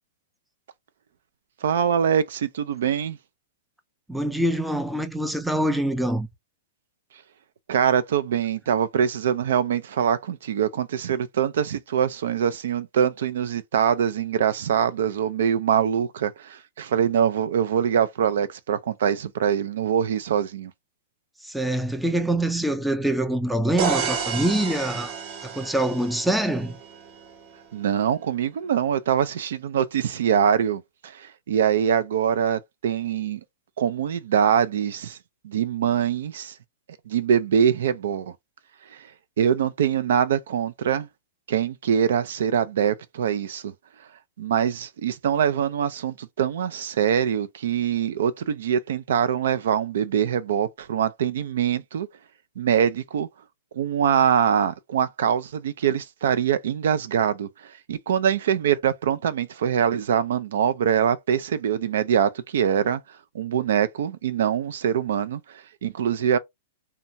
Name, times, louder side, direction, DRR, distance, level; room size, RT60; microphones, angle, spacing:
voice 1, 1.6-3.2 7.7-20.7 27.7-33.4 33.8-35.2 35.4-36.5 37.1-38.3 38.9-39.1 39.4-41.1 41.5-43.7 44.4-52.1 52.6-53.3 53.7-63.0 63.3-66.4, right 8 dB, 75° right, 0.4 m, -23 dB
voice 2, 4.1-6.3 21.4-25.1 25.4-26.7, right 1 dB, ahead, 0.4 m, -24 dB
sound 1, 23.8-27.6, right 6 dB, 45° right, 0.8 m, -31 dB
2.8 x 2.2 x 2.6 m
hypercardioid pair, 135°, 0 cm